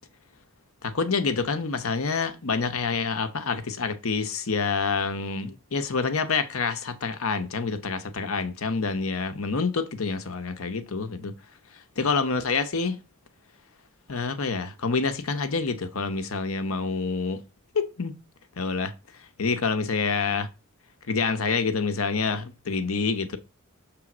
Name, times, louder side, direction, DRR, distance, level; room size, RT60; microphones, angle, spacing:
voice 1, 0.8-11.3 11.7-13.0 14.1-17.4 17.7-18.1 18.6-20.5 21.1-23.4, left 4 dB, 70° left, 0.8 m, -27 dB
6.1 x 3.5 x 6.0 m
head